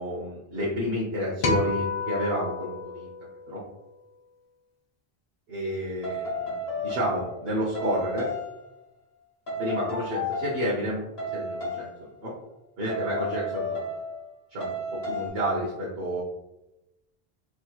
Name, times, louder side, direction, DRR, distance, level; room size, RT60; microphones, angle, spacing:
voice 1, 0.0-3.1 3.5-3.6 5.5-8.3 9.6-11.0 11.3-11.9 12.2-12.3 12.8-13.8 14.5-16.2, equal, 70° right, -6 dB, 1.1 m, -30 dB
sound 1, 1.4-3.9, left 3 dB, 45° left, 0.5 m, -31 dB
sound 2, 6.0-7.4 7.7-8.6 9.5-10.7 11.2-11.9 12.9-14.3 14.6-15.3, left 1 dB, 80° left, 1.6 m, -32 dB
4.7 x 2.9 x 2.3 m, 0.94 s
omnidirectional pair, 1.0 m